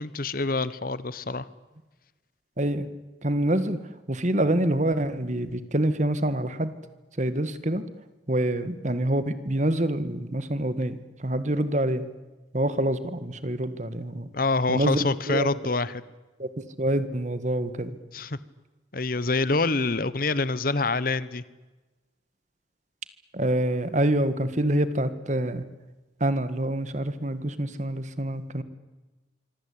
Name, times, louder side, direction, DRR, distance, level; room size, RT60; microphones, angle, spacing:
voice 1, 0.0-1.5 14.3-16.0 18.1-18.4 18.9-21.4, left 3 dB, 50° left, 17 dB, 1.1 m, -26 dB
voice 2, 2.6-2.9 3.2-3.8 4.1-6.7 7.2-7.8 8.3-12.1 12.5-14.3 14.7-15.5 16.4-16.5 16.8-18.0 23.3-25.7 26.2-28.6, right 1 dB, 40° right, 12 dB, 1.8 m, -26 dB
25.5 x 25.0 x 8.7 m, 1.2 s
head